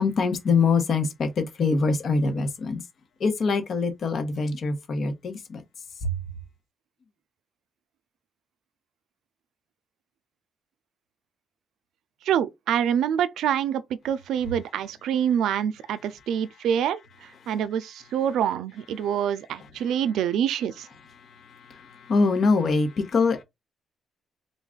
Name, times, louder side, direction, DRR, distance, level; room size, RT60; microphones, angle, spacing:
voice 1, 0.0-2.8 3.2-5.6 6.0-6.1 17.4-17.5 21.1-23.4, left 4 dB, 55° left, 1.2 m, -24 dB
voice 2, 12.2-20.9, right 9 dB, 85° right, 0.4 m, -26 dB
3.8 x 2.4 x 3.8 m
cardioid pair, 110°, 0 cm